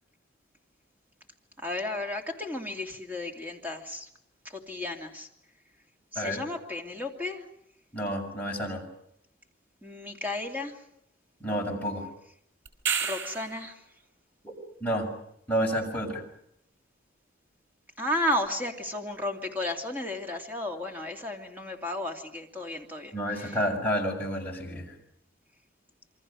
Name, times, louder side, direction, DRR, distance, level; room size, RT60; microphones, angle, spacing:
voice 1, 1.6-4.1 4.4-5.3 6.1-7.5 9.8-10.8 13.0-13.8 18.0-23.6, left 1 dB, 10° right, 2 dB, 2.9 m, -33 dB
voice 2, 7.9-8.8 11.4-12.1 14.8-15.1 15.5-16.2 23.1-24.9, equal, 10° left, -2 dB, 6.2 m, -30 dB
sound 1, 12.7-13.6 18.3-18.4, right 6 dB, 85° right, 4.6 m, -30 dB
28.0 x 24.0 x 6.5 m, 0.76 s
head